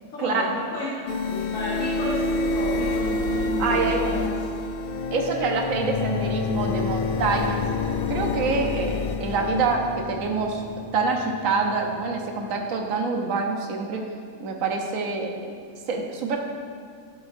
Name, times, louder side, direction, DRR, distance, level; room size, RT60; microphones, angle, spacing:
voice 1, 0.1-4.3, left 2 dB, 60° left, -7 dB, 1.5 m, -32 dB
sound 1, 1.1-12.7, left 3 dB, 80° left, 0.5 m, -28 dB
voice 2, 3.6-4.1 5.1-7.7 8.1-10.6 10.9-14.0 14.4-15.5 15.9-16.4, right 4 dB, 65° right, 1 dB, 1.3 m, -26 dB
12.0 x 7.0 x 2.7 m, 2.3 s
omnidirectional pair, 1.5 m